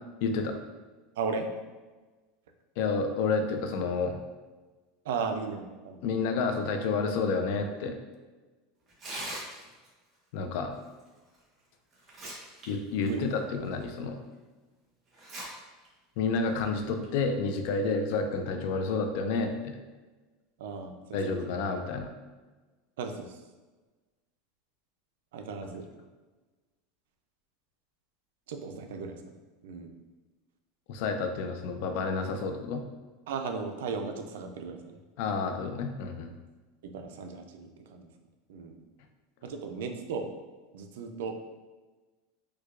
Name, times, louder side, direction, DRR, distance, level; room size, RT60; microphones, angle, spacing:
voice 1, 0.2-0.6 2.8-4.2 6.0-7.9 10.3-10.8 12.7-14.2 16.2-19.8 21.1-22.1 30.9-32.8 35.2-36.3, left 4 dB, 65° left, 6 dB, 0.4 m, -30 dB
voice 2, 1.2-1.5 5.1-6.0 13.0-13.2 20.6-21.2 23.0-23.4 25.3-25.9 28.5-29.2 29.6-29.9 33.3-34.8 36.8-38.1 38.5-38.8 39.4-40.3 40.7-41.4, right 5 dB, 85° right, 5 dB, 0.4 m, -36 dB
Tearing, 8.9-9.9 11.3-11.4 11.9-12.7 13.0-13.1 13.8-13.9 15.1-15.4 15.8-15.9 16.8-17.0, right 1 dB, 25° right, 1.0 m, -40 dB
4.6 x 2.2 x 2.4 m, 1.3 s
supercardioid pair, 145°, 0 cm